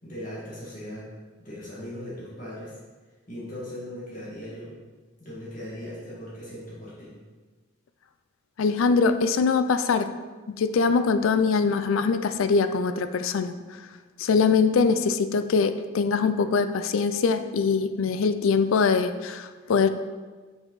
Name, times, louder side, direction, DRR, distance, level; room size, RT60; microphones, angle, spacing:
voice 1, 0.0-1.1 1.4-2.7 3.3-4.7 5.2-7.1, left 1 dB, 40° left, -8 dB, 1.9 m, -38 dB
voice 2, 8.6-10.2 10.6-13.5 14.2-19.9, left 5 dB, 85° left, 10 dB, 0.4 m, -23 dB
6.4 x 5.8 x 3.9 m, 1.3 s
head